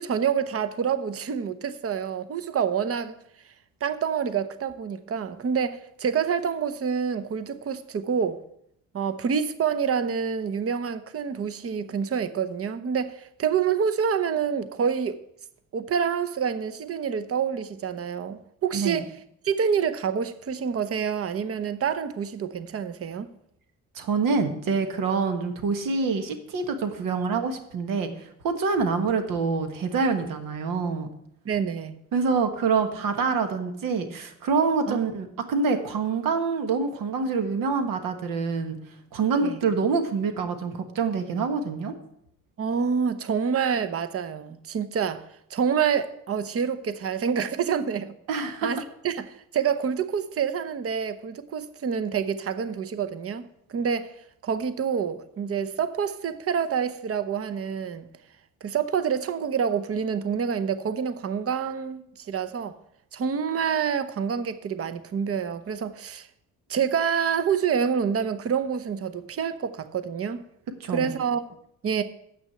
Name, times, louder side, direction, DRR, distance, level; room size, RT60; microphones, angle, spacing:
voice 1, 0.0-3.2 3.8-8.4 8.9-15.2 15.7-19.1 19.4-23.3 31.4-31.9 34.9-35.0 39.4-39.6 42.6-45.2 45.5-48.1 48.6-48.8 49.0-53.4 53.7-54.1 54.4-58.1 58.6-62.8 63.1-66.3 66.7-70.4 70.9-71.4 71.8-72.0, right 7 dB, 45° right, 0.8 m, -27 dB
voice 2, 18.7-19.0 23.9-31.1 32.1-38.8 39.1-41.9 48.3-48.7 70.8-71.1, right 4 dB, 80° right, 1.3 m, -26 dB
7.8 x 6.1 x 7.8 m
cardioid pair, 80°, 33 cm